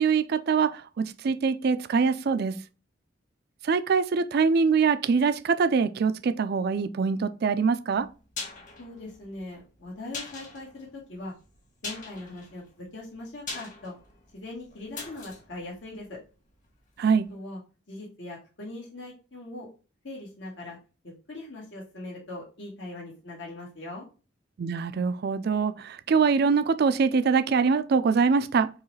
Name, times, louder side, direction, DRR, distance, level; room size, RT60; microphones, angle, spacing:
voice 1, 0.0-2.6 3.6-8.1 17.0-17.3 24.6-28.7, right 5 dB, 60° right, 0.4 m, -24 dB
sound 1, 7.9-16.8 17.1-17.2, left 4 dB, 45° left, 1.7 m, -42 dB
voice 2, 8.8-11.3 11.8-13.9 14.3-16.2 17.3-17.6 17.9-19.7 20.0-20.8 21.0-24.1, left 2 dB, 75° left, 1.6 m, -40 dB
4.7 x 3.1 x 3.2 m
head